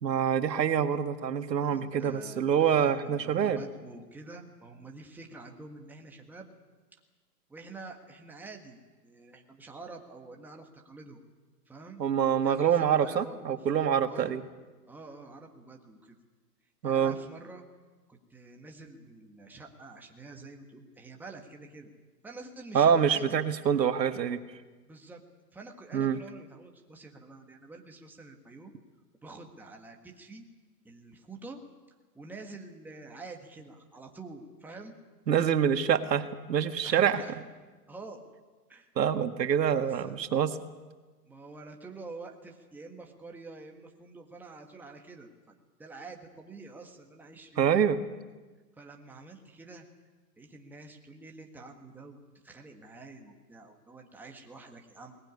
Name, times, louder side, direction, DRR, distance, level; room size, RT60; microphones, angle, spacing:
voice 1, 0.0-3.6 12.0-14.4 16.8-17.2 22.7-24.4 25.9-26.2 35.3-37.2 39.0-40.5 47.6-48.0, right 8 dB, 80° right, 9 dB, 1.9 m, -26 dB
voice 2, 1.6-6.5 7.5-11.2 11.7-12.0 12.4-13.6 14.0-14.4 14.9-16.2 16.8-17.6 18.1-21.9 22.2-23.4 24.8-25.2 25.5-28.7 29.2-30.5 30.8-31.6 32.1-34.9 36.8-37.4 37.9-38.2 38.7-38.9 39.8-40.1 41.2-45.3 45.8-47.7 48.8-49.9 50.4-55.2, right 3 dB, 5° right, 2 dB, 1.5 m, -47 dB
21.5 x 19.0 x 9.6 m, 1.3 s
hypercardioid pair, 155°, 49 cm